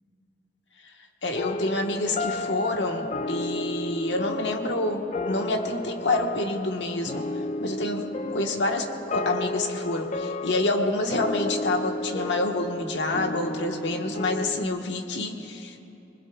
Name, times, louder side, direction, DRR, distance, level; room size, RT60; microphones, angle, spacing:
voice 1, 1.2-7.2 7.6-8.0 8.3-15.8, left 2 dB, 85° left, 2 dB, 1.4 m, -28 dB
sound 1, 1.4-14.7, left 2 dB, 40° left, 0.5 m, -32 dB
27.5 x 21.0 x 2.4 m, 2.8 s
head